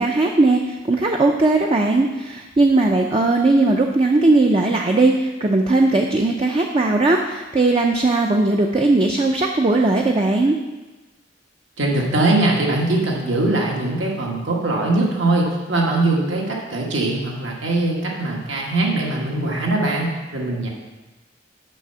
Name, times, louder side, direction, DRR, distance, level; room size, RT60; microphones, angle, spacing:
voice 1, 0.0-10.6, right 2 dB, 30° right, 1 dB, 0.5 m, -18 dB
voice 2, 11.8-20.7, right 2 dB, 75° right, -2 dB, 1.6 m, -21 dB
6.2 x 5.7 x 6.8 m, 1.2 s
head